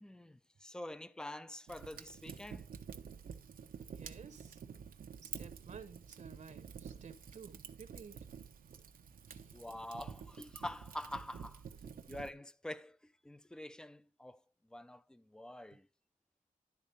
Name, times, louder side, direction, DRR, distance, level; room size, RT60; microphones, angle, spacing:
voice 1, 0.0-2.7 9.5-14.4 14.7-15.9, left 1 dB, 5° left, 0.5 m, -46 dB
Fire, 1.7-12.3, right 7 dB, 90° right, 0.9 m, -49 dB
voice 2, 3.9-4.6 5.2-8.2 9.3-9.5, right 6 dB, 60° right, 1.0 m, -53 dB
12.0 x 4.2 x 5.2 m
wide cardioid pair, 120°, 14 cm